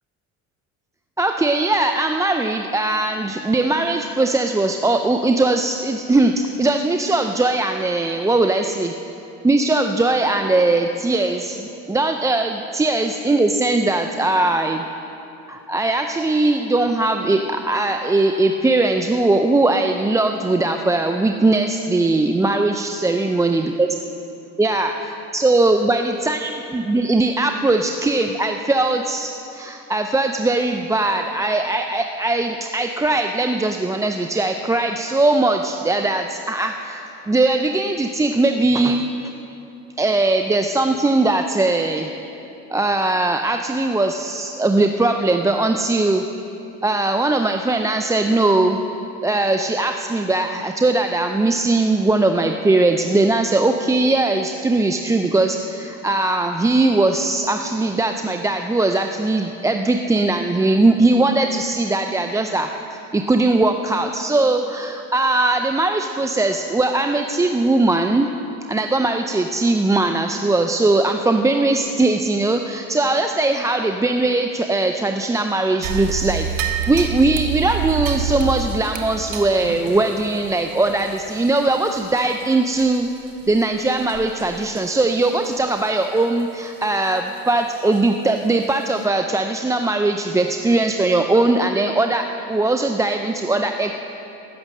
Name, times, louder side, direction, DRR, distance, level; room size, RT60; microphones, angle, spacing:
voice 1, 1.2-8.9 9.4-14.8 15.5-23.9 24.6-39.1 40.0-42.1 42.7-46.2 46.8-48.8 49.2-62.7 63.1-68.3 68.7-83.1 83.5-93.9, right 2 dB, 10° right, 5 dB, 0.4 m, -20 dB
sound 1, 75.8-82.4 82.7-82.9 83.4-83.6 84.1-84.4 84.8-84.9 85.4-85.5 87.9-88.0 88.6-88.7, right 8 dB, 75° right, 1.2 m, -28 dB
15.5 x 6.3 x 7.5 m, 3.0 s
supercardioid pair, 90°, 35 cm